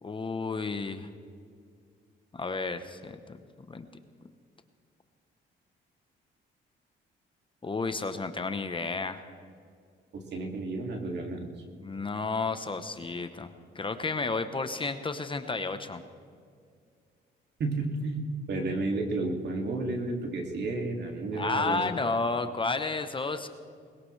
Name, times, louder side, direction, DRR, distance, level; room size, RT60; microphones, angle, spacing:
voice 1, 0.0-1.1 2.3-3.4 3.7-3.9 7.6-9.2 11.8-16.0 21.3-23.5, left 3 dB, 25° left, 9 dB, 0.9 m, -32 dB
voice 2, 10.1-11.5 17.6-22.1, right 2 dB, 60° right, 2 dB, 2.5 m, -32 dB
21.0 x 21.0 x 3.3 m, 2.2 s
cardioid pair, 90°, 20 cm